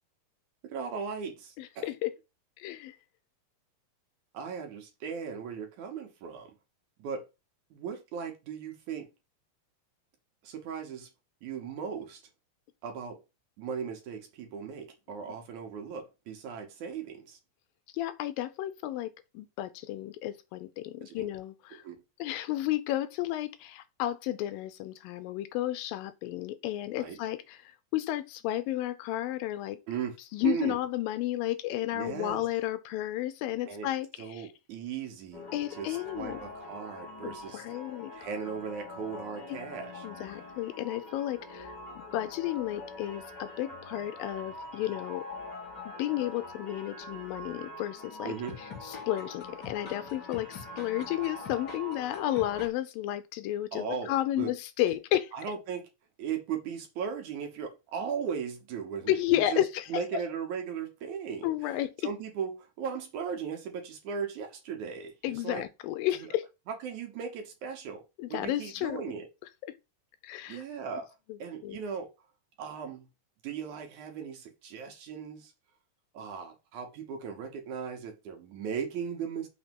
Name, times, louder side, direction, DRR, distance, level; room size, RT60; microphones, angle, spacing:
voice 1, 0.6-1.9 4.3-6.5 7.0-7.3 7.7-9.1 10.4-11.1 11.4-12.2 12.8-13.2 13.6-17.4 21.1-21.3 21.7-22.0 27.0-27.2 29.9-30.2 30.4-30.8 31.9-32.4 33.7-33.9 34.2-35.5 35.8-37.6 38.1-40.1 48.3-48.6 53.7-54.5 54.9-55.0 55.3-55.9 56.2-59.6 59.9-61.5 62.0-65.6 66.2-66.3 66.7-68.0 68.3-69.3 70.5-71.1 71.4-72.1 72.6-73.1 73.4-75.5 76.1-79.5, right 7 dB, 65° right, 2.3 m, -37 dB
voice 2, 1.6-2.1 2.6-3.0 17.9-21.8 22.2-27.6 27.9-29.8 30.3-34.5 35.5-36.4 37.2-38.1 39.5-39.6 40.0-45.3 45.9-48.3 48.8-55.3 59.1-59.9 61.4-61.9 65.2-66.5 68.2-69.0 69.7-69.8 70.2-70.6 71.3-71.8, left 14 dB, 85° left, 2.4 m, -32 dB
sound 1, 35.3-52.7, left 2 dB, 35° left, 2.2 m, -44 dB
6.2 x 3.6 x 5.2 m
omnidirectional pair, 4.0 m